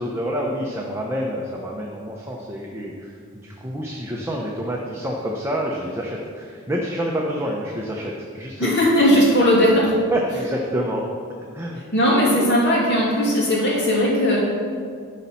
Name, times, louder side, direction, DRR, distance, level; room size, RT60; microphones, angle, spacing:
voice 1, 0.0-8.8 10.1-11.1 11.5-11.8, equal, 10° right, -2 dB, 0.7 m, -27 dB
voice 2, 8.6-9.9 11.9-14.4, equal, 55° left, -4 dB, 2.5 m, -18 dB
11.5 x 4.2 x 5.6 m, 2.1 s
head